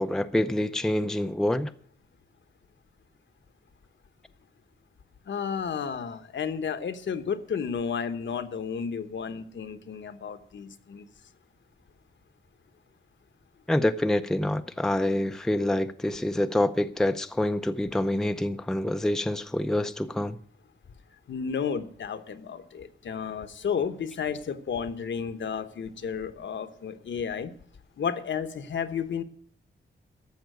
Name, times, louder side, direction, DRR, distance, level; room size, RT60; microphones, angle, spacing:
voice 1, 0.0-1.7 13.7-20.4, left 1 dB, 5° left, 0.5 m, -26 dB
voice 2, 5.3-11.1 21.3-27.5 28.0-29.2, left 6 dB, 70° left, 1.1 m, -32 dB
14.0 x 5.8 x 9.1 m
wide cardioid pair, 150°, 20 cm